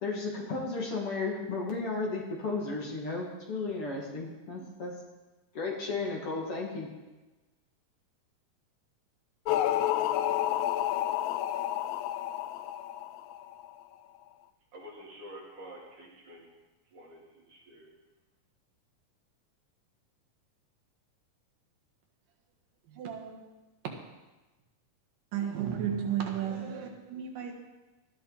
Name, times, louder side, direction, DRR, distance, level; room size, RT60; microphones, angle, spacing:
voice 1, 0.0-4.9 5.5-6.9, left 3 dB, 45° left, -2 dB, 2.9 m, -34 dB
sound 1, 9.5-13.7, left 12 dB, 80° left, 1.8 m, -30 dB
voice 2, 14.7-16.5 16.9-17.9, equal, 65° right, -4 dB, 4.8 m, -48 dB
voice 3, 22.9-23.5 25.3-27.5, right 9 dB, 85° right, 1 dB, 3.2 m, -34 dB
18.5 x 13.0 x 4.1 m, 1.1 s
omnidirectional pair, 3.7 m